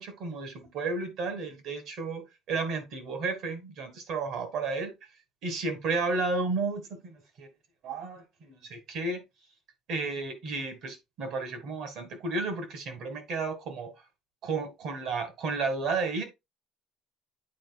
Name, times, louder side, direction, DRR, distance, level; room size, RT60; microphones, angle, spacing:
voice 1, 0.0-4.9 5.4-7.5 7.8-9.2 9.9-13.9 14.4-16.2, right 3 dB, 55° right, 1.7 m, -32 dB
9.5 x 4.4 x 2.3 m
cardioid pair, 160°, 0 cm